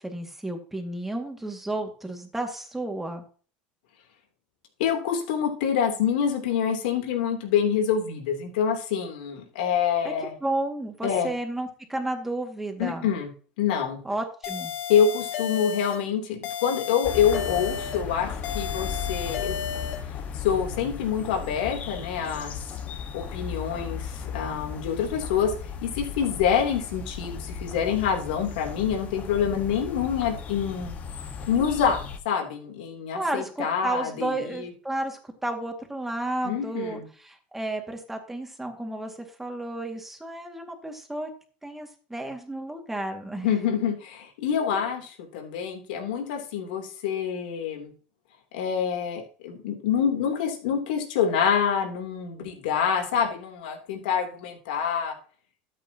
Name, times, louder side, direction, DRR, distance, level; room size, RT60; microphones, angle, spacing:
voice 1, 0.0-3.2 10.0-10.1 10.4-13.1 14.0-14.7 33.1-41.3 41.6-43.5 44.6-44.8, right 2 dB, 5° right, 4 dB, 2.1 m, -32 dB
voice 2, 4.8-10.3 11.0-11.3 12.8-13.3 13.6-14.0 14.9-19.5 20.3-22.6 23.1-25.5 25.8-30.9 31.5-34.7 36.4-37.1 43.4-47.9 48.5-55.1, left 7 dB, 85° left, 3 dB, 3.1 m, -26 dB
sound 1, 14.4-16.0 16.4-18.0 18.4-20.0, left 8 dB, 60° left, 2.0 m, -33 dB
sound 2, 17.0-32.2, left 6 dB, 35° left, 1.4 m, -36 dB
13.0 x 8.5 x 2.9 m, 0.40 s
supercardioid pair, 135°, 5 cm